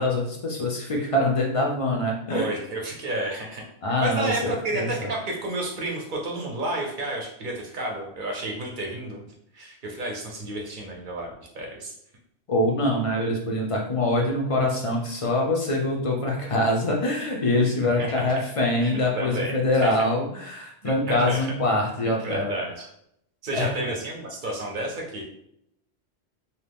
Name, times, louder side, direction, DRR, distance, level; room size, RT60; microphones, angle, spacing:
voice 1, 0.0-2.5 3.8-5.1 12.5-22.5 23.5-23.7, left 1 dB, 45° left, -1 dB, 0.5 m, -24 dB
voice 2, 2.3-3.6 4.0-9.2 9.5-11.9 18.0-18.4 18.8-20.0 20.8-21.5 22.2-22.8 23.4-25.2, right 1 dB, 55° right, 0 dB, 0.8 m, -31 dB
2.7 x 2.2 x 3.4 m, 0.74 s
omnidirectional pair, 1.1 m